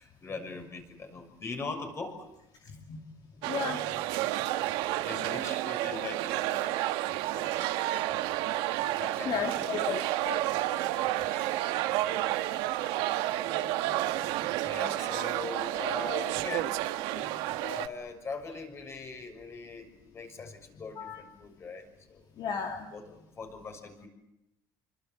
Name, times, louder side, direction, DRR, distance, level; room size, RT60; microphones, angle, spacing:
voice 1, 0.0-2.2 5.0-6.6 7.3-7.5 9.0-10.0 11.9-12.1 13.3-13.4 14.6-16.8 17.1-17.3 17.6-19.9 20.1-22.2 22.9-24.1, left 4 dB, 30° left, 6 dB, 6.5 m, -41 dB
voice 2, 2.6-3.0 3.4-4.0 9.3-10.4 11.3-11.6 13.5-13.6 21.0-21.2 22.4-22.9, left 7 dB, 50° left, 3 dB, 2.6 m, -35 dB
sound 1, 3.4-17.9, right 15 dB, 90° right, 1.6 m, -30 dB
28.5 x 25.0 x 7.9 m, 0.87 s
cardioid pair, 135°, 9 cm